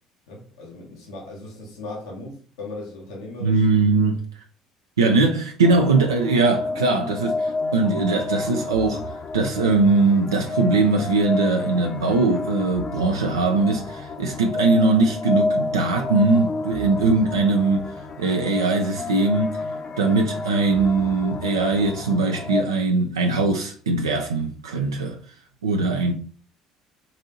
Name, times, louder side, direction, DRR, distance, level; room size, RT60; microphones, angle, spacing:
voice 1, 0.3-3.6 25.8-25.9, left 2 dB, 75° left, 0.8 m, -38 dB
voice 2, 3.4-4.2 5.0-19.6 20.0-25.2 25.6-26.1, right 3 dB, 85° right, 0.3 m, -21 dB
sound 1, 5.6-22.6, left 3 dB, 40° left, 0.6 m, -30 dB
4.0 x 2.6 x 2.6 m
hypercardioid pair, 60°, 2 cm